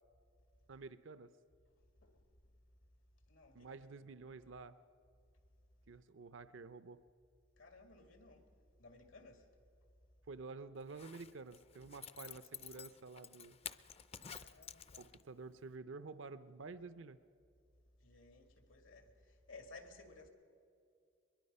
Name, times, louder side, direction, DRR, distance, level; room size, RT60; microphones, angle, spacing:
voice 1, 0.7-1.3 3.5-4.8 5.9-7.0 10.3-13.6 15.0-17.2, right 4 dB, 70° right, 0.6 m, -50 dB
voice 2, 3.3-4.1 7.6-8.4 8.8-9.4 14.2-15.1 18.0-20.3, left 3 dB, 85° left, 2.4 m, -58 dB
Zipper (clothing), 10.8-15.4 15.7-15.8, left 7 dB, 30° left, 0.5 m, -51 dB
22.5 x 22.0 x 5.5 m
head